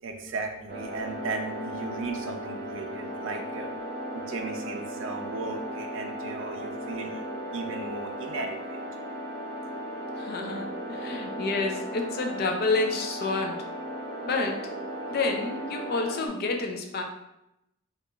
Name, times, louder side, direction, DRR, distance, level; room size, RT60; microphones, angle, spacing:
voice 1, 0.0-3.7 4.1-7.2 7.5-8.8, right 3 dB, 60° right, 4 dB, 0.4 m, -36 dB
sound 1, 0.7-16.3, equal, 30° right, 0.8 m, -36 dB
voice 2, 10.2-13.7 14.2-14.6 15.1-17.0, left 3 dB, 45° left, 3 dB, 0.4 m, -29 dB
4.6 x 2.4 x 2.4 m, 0.87 s
head